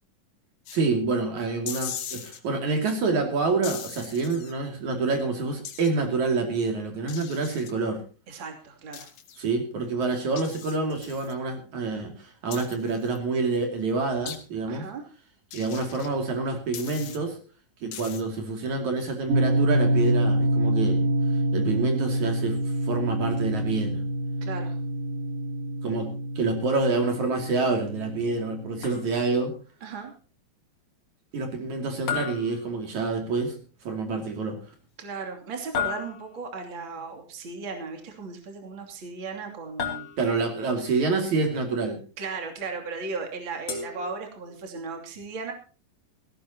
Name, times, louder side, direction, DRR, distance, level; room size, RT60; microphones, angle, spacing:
sound 1, 0.7-0.8 1.7-2.4 3.6-4.5 5.6-6.0 7.1-7.7 8.9-9.4 10.4-11.3 12.5-13.2 14.3-14.4 15.5-16.1 16.7-17.2 17.9-18.2, left 9 dB, 85° left, 3.5 m, -39 dB
voice 1, 0.7-8.0 9.4-14.9 15.5-17.4 17.8-21.1 21.5-22.6 22.8-24.0 25.8-29.5 31.3-33.6 33.9-34.6 40.2-42.0, right 3 dB, 60° right, 4 dB, 3.9 m, -27 dB
voice 2, 8.3-9.1 14.7-15.0 24.4-24.8 29.8-30.1 35.0-40.1 42.2-45.5, right 4 dB, 35° right, 2 dB, 3.3 m, -36 dB
sound 2, 19.3-29.5, right 1 dB, 75° right, 3.9 m, -26 dB
sound 3, 28.8-29.5 32.1-33.3 35.8-36.6 39.8-40.6 43.7-44.7, left 7 dB, 50° left, 4.4 m, -34 dB
18.0 x 17.0 x 2.9 m, 0.36 s
omnidirectional pair, 3.9 m